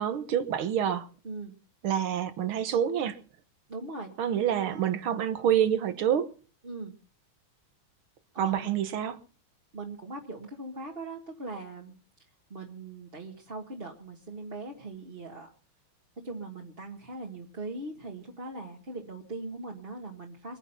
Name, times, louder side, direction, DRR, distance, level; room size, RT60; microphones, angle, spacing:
voice 1, 0.0-1.1 1.8-3.2 4.2-6.3 8.4-9.2, right 9 dB, 75° right, 2.0 m, -27 dB
voice 2, 3.7-4.1 4.6-5.0 5.3-5.5 6.6-6.9 8.3-8.7 9.7-11.9 12.5-15.5 16.2-20.6, right 2 dB, 30° right, 1.7 m, -40 dB
22.5 x 9.9 x 5.8 m
omnidirectional pair, 2.3 m